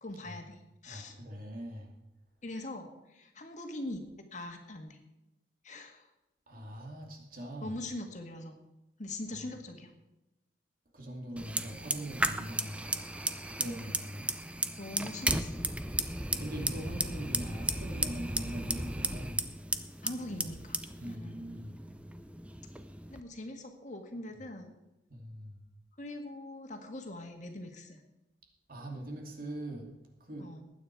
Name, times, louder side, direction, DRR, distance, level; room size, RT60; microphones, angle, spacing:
voice 1, 0.0-1.2 2.4-4.0 4.3-5.0 5.6-6.1 7.6-8.6 9.0-9.9 14.8-15.7 20.0-20.8 21.0-21.4 23.1-24.7 26.0-28.0 30.4-30.6, left 1 dB, 40° left, 4 dB, 1.8 m, -42 dB
voice 2, 0.9-2.0 6.5-7.8 10.9-13.1 13.6-14.3 16.4-19.4 21.0-21.8 25.1-25.6 28.7-29.9 30.2-30.5, right 1 dB, 50° right, 1 dB, 2.6 m, -42 dB
Fire, 11.4-23.2, right 2 dB, 5° right, 0.6 m, -35 dB
19.5 x 9.3 x 4.7 m, 0.94 s
head